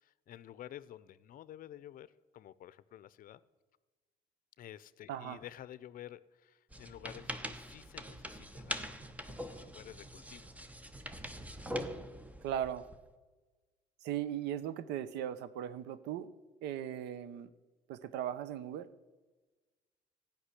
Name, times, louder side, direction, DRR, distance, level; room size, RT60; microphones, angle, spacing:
voice 1, 0.0-3.4 4.6-10.5, left 12 dB, 55° left, 17 dB, 0.7 m, -51 dB
voice 2, 5.1-5.4 12.4-12.9 14.0-16.3 16.6-17.5 17.9-18.9, right 10 dB, 85° right, 15 dB, 0.9 m, -38 dB
sound 1, 6.7-13.0, equal, 10° right, 1.0 m, -43 dB
15.0 x 6.0 x 9.9 m, 1.2 s
cardioid pair, 110°, 17 cm